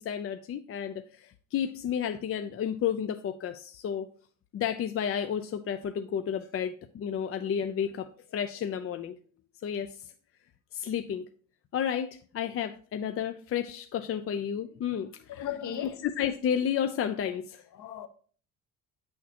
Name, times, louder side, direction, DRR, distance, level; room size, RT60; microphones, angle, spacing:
voice 1, 0.0-4.1 4.5-9.2 9.6-10.1 10.7-11.3 11.7-15.2 16.0-17.6, left 8 dB, 45° left, 0.4 m, -31 dB
voice 2, 15.3-16.0 17.7-18.1, left 9 dB, 60° left, 0.9 m, -36 dB
8.2 x 6.4 x 2.8 m
cardioid pair, 100°, 33 cm